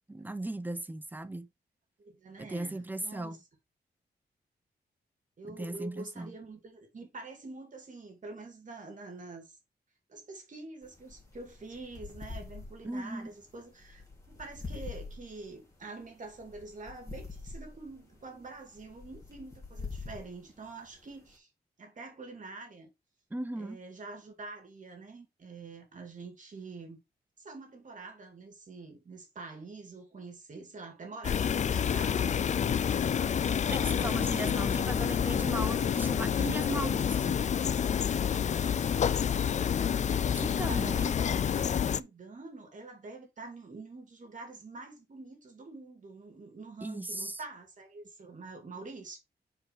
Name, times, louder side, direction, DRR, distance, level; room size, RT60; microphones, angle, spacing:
voice 1, 0.1-1.5 2.4-3.4 5.5-6.3 12.8-13.3 23.3-23.8 33.7-37.4 40.3-41.2 46.8-47.4, right 2 dB, 10° right, 0.7 m, -37 dB
voice 2, 2.0-3.4 5.4-9.6 10.1-21.5 21.8-22.9 23.5-27.0 27.4-32.5 40.1-49.2, right 3 dB, 50° right, 2.4 m, -46 dB
sound 1, 10.8-21.4, left 3 dB, 20° left, 2.8 m, -46 dB
sound 2, 31.2-42.0, left 8 dB, 45° left, 0.4 m, -28 dB
4.8 x 4.7 x 5.0 m
wide cardioid pair, 125°, 17 cm